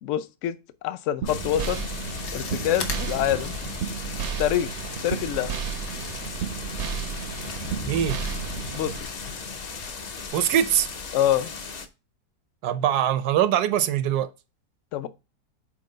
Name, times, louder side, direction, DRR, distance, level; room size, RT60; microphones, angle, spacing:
voice 1, 0.0-1.8 2.3-3.6 4.4-4.7 5.0-5.6 8.7-8.9 11.1-11.5 14.9-15.1, left 11 dB, 65° left, 0.8 m, -26 dB
sound 1, 1.2-9.0, right 8 dB, 60° right, 0.7 m, -33 dB
sound 2, 1.3-11.9, left 4 dB, 45° left, 0.5 m, -36 dB
sound 3, 2.2-10.3, left 5 dB, 85° left, 1.8 m, -42 dB
voice 2, 7.8-8.2 10.3-10.9 12.6-14.3, right 10 dB, 80° right, 1.2 m, -22 dB
7.6 x 4.4 x 3.8 m
omnidirectional pair, 1.7 m